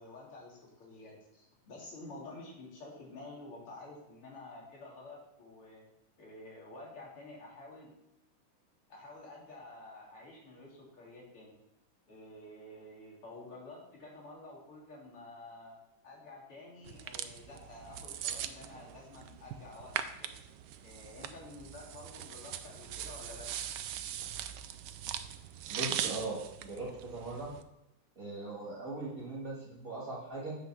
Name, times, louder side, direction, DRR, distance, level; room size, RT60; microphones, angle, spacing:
voice 1, 0.0-5.8 6.2-7.9 8.9-11.5 12.1-15.8 16.0-20.4 20.8-23.5, left 2 dB, 85° left, -4 dB, 3.8 m, -50 dB
sound 1, 16.9-27.6, right 10 dB, 75° right, 1.0 m, -41 dB
voice 2, 25.7-27.5 28.2-30.6, right 2 dB, 40° right, -5 dB, 2.1 m, -40 dB
8.0 x 5.8 x 6.0 m, 0.89 s
omnidirectional pair, 2.4 m